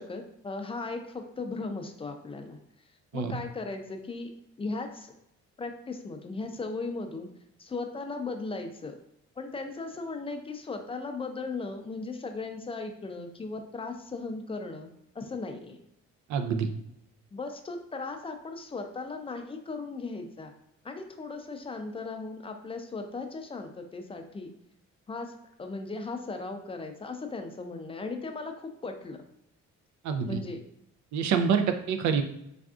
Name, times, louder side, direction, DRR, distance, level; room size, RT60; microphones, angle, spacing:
voice 1, 0.0-2.6 3.1-4.3 4.6-5.1 5.6-7.3 7.6-9.0 9.4-15.8 17.3-20.5 20.8-24.5 25.1-25.3 25.6-29.2 30.2-30.6, left 3 dB, 20° left, 5 dB, 0.4 m, -37 dB
voice 2, 16.3-16.7 30.0-30.4 31.1-32.2, right 6 dB, 70° right, 7 dB, 0.5 m, -26 dB
3.4 x 2.5 x 2.4 m, 0.80 s
cardioid pair, 90°, 30 cm